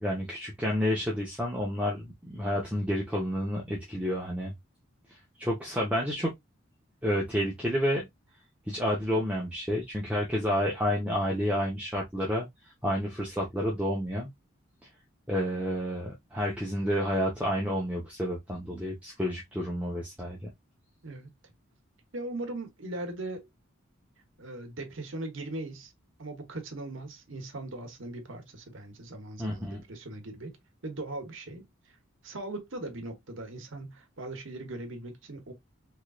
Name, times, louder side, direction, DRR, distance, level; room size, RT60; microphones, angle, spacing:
voice 1, 0.0-4.5 5.4-6.3 7.0-8.1 8.7-12.5 12.8-14.3 15.3-20.5 29.4-29.8, equal, 5° right, 0.9 m, -30 dB
voice 2, 22.1-23.5 24.4-25.9 26.2-30.6 30.8-32.0 32.2-35.5, right 2 dB, 65° right, 1.0 m, -39 dB
3.7 x 3.1 x 2.4 m
head